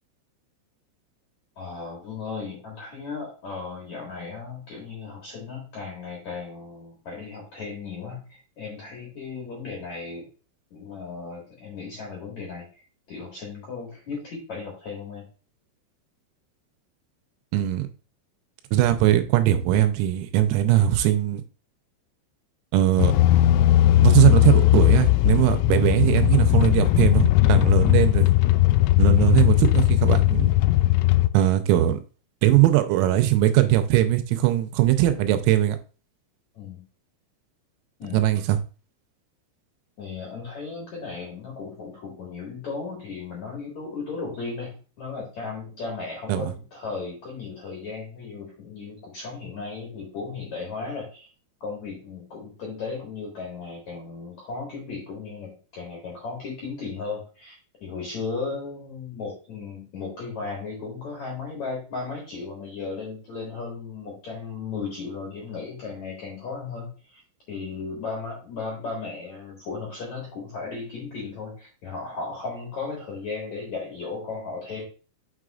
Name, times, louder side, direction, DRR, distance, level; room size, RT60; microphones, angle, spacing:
voice 1, 1.6-10.3 10.7-15.3 36.5-36.8 38.0-38.2 40.0-44.7 45.0-51.3 51.6-57.6 57.8-67.2 67.5-74.9, left 4 dB, 55° left, -2 dB, 2.1 m, -35 dB
voice 2, 17.5-17.9 18.7-21.4 22.7-23.1 24.0-28.3 29.0-30.5 31.3-32.0 32.4-35.8 38.1-38.6 46.3-46.5, right 13 dB, 85° right, 9 dB, 3.4 m, -20 dB
sound 1, 23.0-31.3, left 15 dB, 85° left, 3.2 m, -18 dB
7.3 x 6.3 x 2.4 m, 0.35 s
omnidirectional pair, 6.0 m